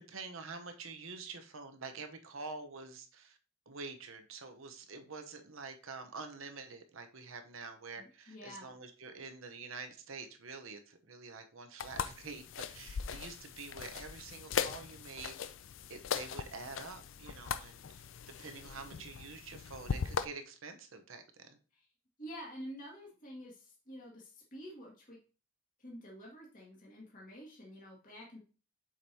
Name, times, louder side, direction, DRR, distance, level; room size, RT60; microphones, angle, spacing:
voice 1, 0.1-3.4 3.7-15.3 15.9-18.0 18.4-21.6, right 4 dB, 70° right, 7 dB, 0.9 m, -47 dB
voice 2, 8.0-8.7 21.7-21.8 22.2-25.2 25.8-28.4, equal, 40° left, -3 dB, 2.2 m, -49 dB
sound 1, 11.8-20.3, left 6 dB, 60° left, 0.4 m, -39 dB
7.3 x 5.2 x 2.8 m, 0.36 s
head